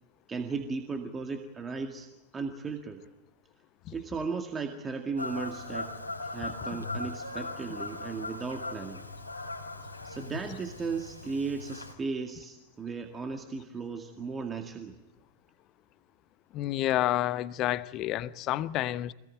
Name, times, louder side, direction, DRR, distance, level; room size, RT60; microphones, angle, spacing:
voice 1, 0.3-3.0 3.9-5.9 6.2-9.0 10.0-15.0, right 4 dB, 20° right, 2.1 m, -36 dB
Fowl / Bird vocalization bird call bird song, 5.2-11.9, left 2 dB, 85° left, 3.0 m, -39 dB
voice 2, 16.5-19.1, left 14 dB, 35° left, 0.8 m, -29 dB
25.5 x 19.5 x 9.2 m
figure-of-eight pair, 90°, 0 cm